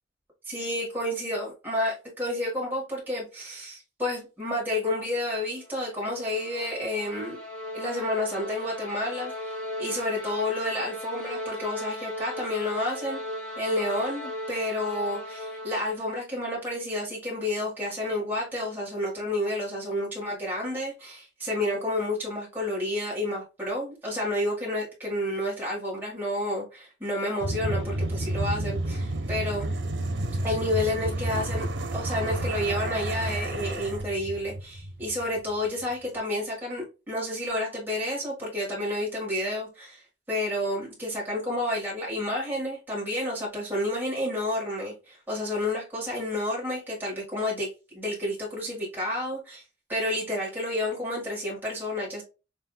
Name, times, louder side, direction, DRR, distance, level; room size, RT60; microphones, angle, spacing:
voice 1, 0.4-7.4 7.7-13.2 13.6-29.7 30.4-31.7 31.9-49.6 49.9-52.2, left 1 dB, 10° right, 1.5 m, -30 dB
sound 1, 5.6-16.2, left 1 dB, 5° left, 1.2 m, -37 dB
sound 2, 27.4-35.6, right 1 dB, 80° right, 0.8 m, -30 dB
5.6 x 2.6 x 2.2 m
head